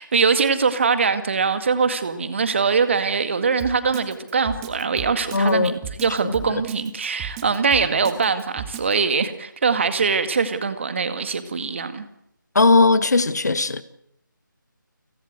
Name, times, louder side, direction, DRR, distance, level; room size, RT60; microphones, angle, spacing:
voice 1, 0.0-12.1, right 5 dB, 35° right, 2.1 m, -22 dB
Drum kit, 3.6-8.9, right 9 dB, 10° right, 1.5 m, -35 dB
voice 2, 5.3-5.7 6.2-6.6 12.5-13.8, left 3 dB, 55° left, 1.5 m, -18 dB
30.0 x 17.0 x 8.0 m
figure-of-eight pair, 160°, 11 cm